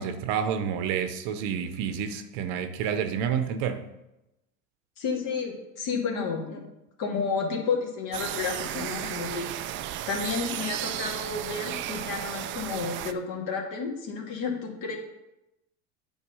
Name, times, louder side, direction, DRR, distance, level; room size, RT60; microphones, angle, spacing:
voice 1, 0.0-3.8, right 7 dB, 55° right, 9 dB, 0.8 m, -29 dB
voice 2, 5.0-6.7 7.0-9.5 10.1-15.0, left 5 dB, 50° left, 0 dB, 2.3 m, -31 dB
sound 1, 8.1-13.1, right 12 dB, 30° right, 0.4 m, -34 dB
8.6 x 4.4 x 5.4 m, 0.92 s
hypercardioid pair, 105°, 40 cm